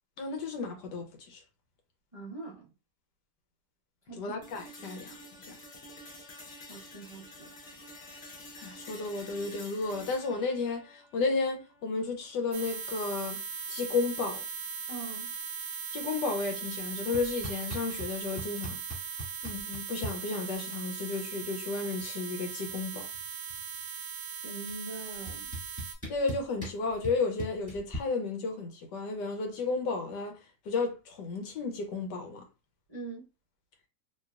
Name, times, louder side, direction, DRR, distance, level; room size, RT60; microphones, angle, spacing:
voice 1, 0.2-1.4 4.2-5.1 8.6-13.4 13.7-14.4 15.9-18.8 19.4-23.1 26.1-30.4 30.7-32.4, left 4 dB, 85° left, 1.4 m, -33 dB
voice 2, 2.1-2.7 4.1-4.2 4.8-5.0 6.7-7.5 14.9-15.3 24.4-25.5 32.9-33.3, right 3 dB, 30° right, 0.6 m, -43 dB
sound 1, 4.4-12.4, left 1 dB, 50° left, 0.9 m, -49 dB
sound 2, 12.5-25.9, right 6 dB, 75° right, 1.3 m, -39 dB
sound 3, 17.1-18.1 18.4-20.1 21.4-21.5 21.7-22.2 22.4-23.8 24.7-24.8 25.3-28.0, equal, 10° left, 1.5 m, -39 dB
3.2 x 2.8 x 2.3 m
omnidirectional pair, 1.8 m